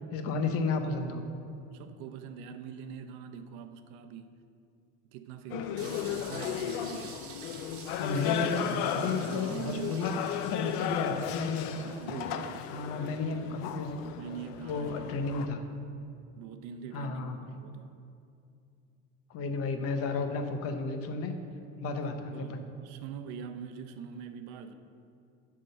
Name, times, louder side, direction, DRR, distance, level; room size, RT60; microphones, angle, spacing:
voice 1, 0.1-1.2 8.0-8.6 8.9-10.1 10.4-11.7 12.7-14.1 14.6-15.6 16.9-17.4 19.3-21.4 21.8-22.6, left 4 dB, 45° left, 6 dB, 0.8 m, -32 dB
voice 2, 1.7-4.4 5.1-7.2 8.4-10.1 11.7-12.7 14.2-15.2 16.4-17.9 22.3-24.7, right 7 dB, 75° right, 8 dB, 0.7 m, -43 dB
sound 1, 5.5-15.5, left 10 dB, 85° left, 0.5 m, -35 dB
sound 2, 5.8-12.6, right 5 dB, 45° right, 1.1 m, -49 dB
10.5 x 3.7 x 6.5 m, 2.5 s
cardioid pair, 155°, 31 cm